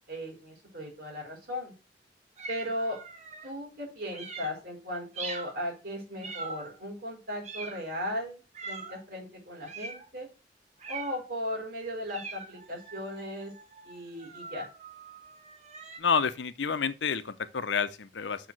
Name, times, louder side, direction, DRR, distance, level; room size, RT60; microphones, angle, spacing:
voice 1, 0.1-1.7 2.5-3.0 3.4-10.3 10.9-13.5 13.8-14.7, left 1 dB, 55° right, 4.1 m, -37 dB
sound 1, 2.4-3.5 4.1-4.6 5.1-5.6 6.2-6.8 7.4-8.0 8.5-9.0 9.6-10.1 10.8-11.3 12.1-16.0, right 4 dB, 40° right, 1.5 m, -42 dB
voice 2, 16.0-18.5, left 6 dB, 75° left, 0.7 m, -29 dB
6.5 x 4.7 x 6.0 m
head